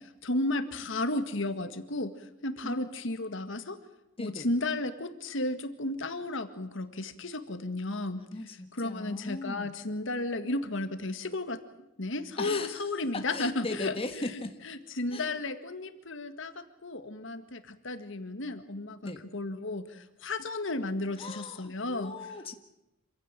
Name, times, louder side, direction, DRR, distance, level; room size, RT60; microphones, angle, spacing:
voice 1, 0.0-3.8 4.2-8.3 8.7-11.6 12.0-13.9 14.3-22.1, left 2 dB, 65° left, 9 dB, 1.8 m, -33 dB
voice 2, 8.3-9.8 12.4-12.9 13.1-14.6 15.1-15.3 19.0-19.2 21.2-22.5, left 2 dB, 30° left, 6 dB, 1.6 m, -38 dB
27.0 x 16.0 x 9.0 m, 0.90 s
head